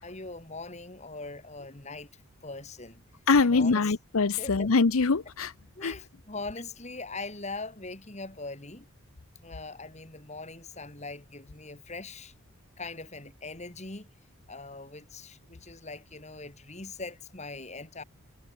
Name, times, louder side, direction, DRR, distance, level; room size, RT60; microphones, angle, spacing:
voice 1, 0.0-2.1 2.4-3.0 3.4-3.9 4.4-4.7 5.8-8.9 9.4-12.3 12.8-14.1 14.5-18.0, left 3 dB, 30° left, 2.9 m, -41 dB
voice 2, 3.3-5.5 5.8-5.9, left 4 dB, 75° left, 0.8 m, -23 dB
head